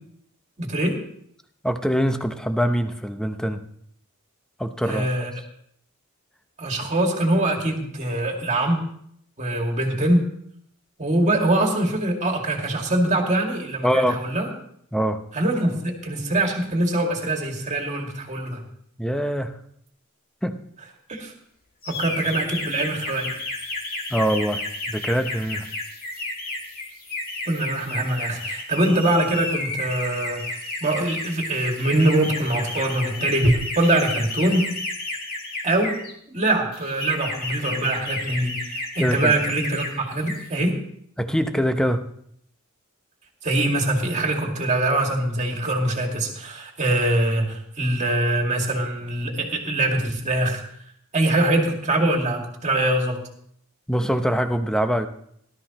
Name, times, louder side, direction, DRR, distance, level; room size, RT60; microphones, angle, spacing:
voice 1, 0.6-1.0 4.9-5.3 6.6-8.8 9.4-10.2 11.0-14.5 15.3-18.6 21.1-21.3 21.9-23.3 27.5-30.4 30.8-34.7 35.6-36.0 36.3-38.7 39.0-40.8 43.4-50.6 51.1-53.2, right 1 dB, 35° right, 1 dB, 2.2 m, -23 dB
voice 2, 1.6-3.6 4.6-5.3 13.8-14.2 14.9-15.2 19.0-19.5 20.4-20.6 24.1-25.7 39.0-39.4 41.2-42.1 53.9-55.1, equal, 5° left, 7 dB, 0.7 m, -23 dB
sound 1, 19.9-20.0 23.4-33.5, right 1 dB, 55° right, 1.8 m, -36 dB
sound 2, 21.8-36.1 36.7-39.9 40.2-40.5, left 2 dB, 45° left, 2.7 m, -32 dB
17.5 x 12.5 x 3.0 m, 0.69 s
head